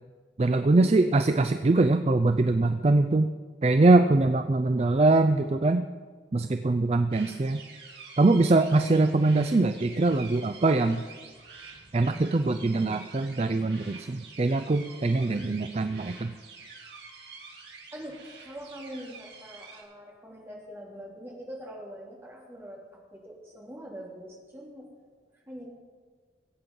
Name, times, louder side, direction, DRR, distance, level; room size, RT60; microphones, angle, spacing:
voice 1, 0.4-3.3 3.6-5.8 6.3-7.6 8.2-11.0 11.9-16.3, right 2 dB, 35° right, 9 dB, 0.4 m, -23 dB
sound 1, 7.1-19.8, right 4 dB, 75° right, 3.1 m, -48 dB
voice 2, 18.4-22.8 23.1-24.9 25.3-25.7, equal, 15° right, -3 dB, 2.8 m, -43 dB
20.5 x 8.5 x 5.3 m, 1.5 s
head